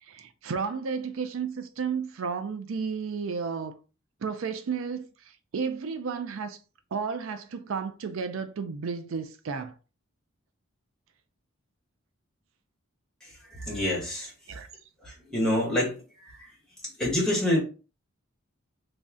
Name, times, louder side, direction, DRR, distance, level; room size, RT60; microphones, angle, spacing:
voice 1, 0.0-3.8 4.2-6.6 6.9-9.7 14.5-14.7, right 5 dB, 75° right, 0.4 m, -32 dB
voice 2, 13.6-14.3 15.0-15.9 17.0-17.6, left 1 dB, 5° left, 1.2 m, -26 dB
3.2 x 2.6 x 3.5 m
head